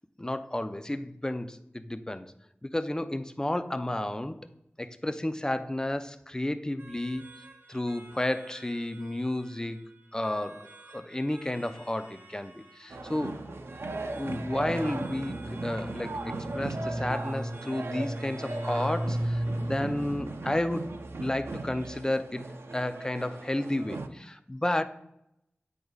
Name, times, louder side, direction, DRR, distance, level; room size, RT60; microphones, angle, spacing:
voice 1, 0.2-2.3 2.6-4.5 4.8-7.2 7.7-13.5 14.1-24.8, left 1 dB, 15° left, 10 dB, 0.4 m, -32 dB
sound 1, 6.8-21.7, right 2 dB, 55° right, 1.4 m, -54 dB
sound 2, 12.9-24.1, right 2 dB, 85° right, 0.5 m, -38 dB
sound 3, 14.2-20.2, right 1 dB, 40° left, 1.2 m, -35 dB
8.0 x 5.0 x 2.3 m, 0.81 s
wide cardioid pair, 45°, 4 cm